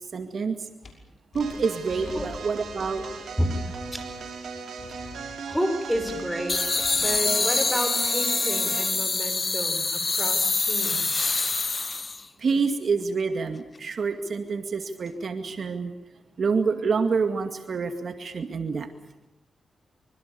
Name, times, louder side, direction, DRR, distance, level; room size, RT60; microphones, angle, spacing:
voice 1, 0.1-0.7 1.3-3.0 12.4-15.9 16.4-18.9, right 5 dB, 55° right, 7 dB, 2.2 m, -27 dB
sound 1, 0.8-0.9 1.3-3.2 3.8-4.3 4.8-5.4 5.9-7.2, left 3 dB, 55° left, 5.9 m, -45 dB
sound 2, 1.4-9.0, right 5 dB, 70° right, 6.6 m, -38 dB
voice 2, 5.5-6.6 6.9-11.3, equal, ahead, 7 dB, 5.4 m, -30 dB
sound 3, 6.5-12.3, left 3 dB, 30° left, 1.0 m, -25 dB
25.5 x 25.0 x 7.1 m, 0.95 s
cardioid pair, 85°, 0 cm